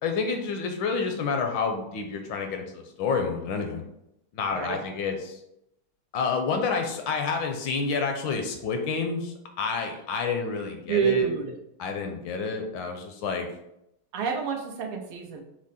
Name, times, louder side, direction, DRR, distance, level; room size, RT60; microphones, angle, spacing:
voice 1, 0.0-3.8 4.3-5.4 6.1-11.3 11.8-13.5, left 5 dB, 75° left, 4 dB, 1.2 m, -29 dB
voice 2, 10.9-11.5 14.1-15.4, right 7 dB, 90° right, 1 dB, 1.7 m, -27 dB
6.1 x 2.1 x 4.1 m, 0.83 s
omnidirectional pair, 2.3 m